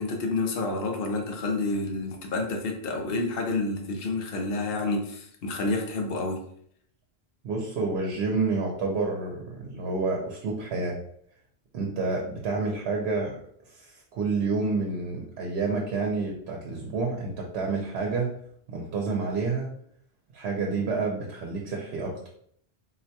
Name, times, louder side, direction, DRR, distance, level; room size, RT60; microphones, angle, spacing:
voice 1, 0.0-6.4, left 3 dB, 65° left, 3 dB, 0.8 m, -29 dB
voice 2, 7.4-11.0 11.7-13.4 13.7-18.3 18.7-19.7 20.3-22.3, right 3 dB, 85° right, 0 dB, 0.9 m, -29 dB
3.8 x 2.2 x 2.7 m, 0.66 s
omnidirectional pair, 1.1 m